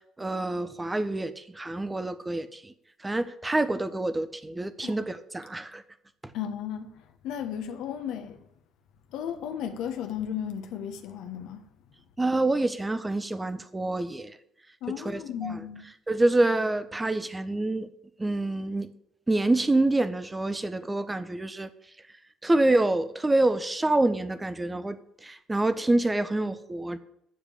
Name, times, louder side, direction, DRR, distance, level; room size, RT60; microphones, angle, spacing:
voice 1, 0.2-2.7 3.0-5.8 12.2-14.3 15.0-15.6 16.1-17.9 18.2-18.9 19.3-21.7 22.4-25.0 25.2-27.0, right 2 dB, 15° right, 1.2 m, -26 dB
voice 2, 6.3-6.9 7.2-8.4 9.1-11.6 14.8-15.9, left 9 dB, 60° left, 1.3 m, -34 dB
14.0 x 5.1 x 8.7 m
figure-of-eight pair, 50°, 0 cm